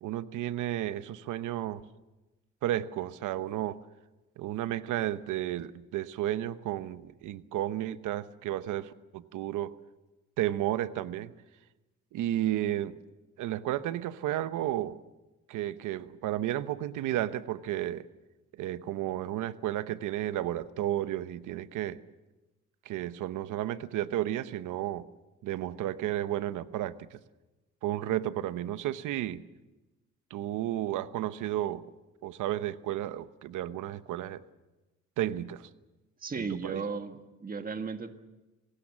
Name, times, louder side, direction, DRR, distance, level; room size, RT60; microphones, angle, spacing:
voice 1, 0.0-1.8 2.6-3.8 4.4-9.7 10.4-11.3 12.1-13.0 13.4-15.0 15.5-18.1 18.6-22.0 22.8-25.1 25.4-27.2 27.8-29.4 30.3-31.8 32.2-34.4 35.2-35.7 36.4-36.8, right 13 dB, 85° right, 14 dB, 1.0 m, -32 dB
voice 2, 36.2-38.1, right 5 dB, 30° right, 7 dB, 1.6 m, -35 dB
26.0 x 19.0 x 7.4 m, 1.1 s
cardioid pair, 90°, 30 cm